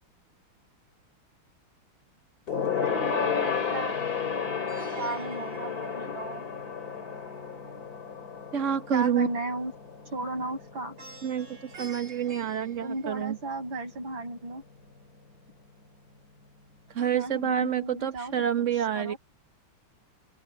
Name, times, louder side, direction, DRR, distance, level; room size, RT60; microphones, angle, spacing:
Gong, 2.5-12.2 12.5-12.8 13.1-13.2, left 7 dB, 45° left, 3.3 m, -33 dB
voice 1, 2.8-6.5 8.9-9.7 10.1-11.0 12.8-14.6 17.1-19.2, right 2 dB, 65° right, 8.7 m, -36 dB
Plucked string instrument, 4.7-6.8 11.0-13.6, right 4 dB, 85° right, 7.0 m, -48 dB
voice 2, 8.5-9.3 11.2-13.4 16.9-19.1, right 8 dB, 40° right, 1.4 m, -28 dB
open air
omnidirectional pair, 2.3 m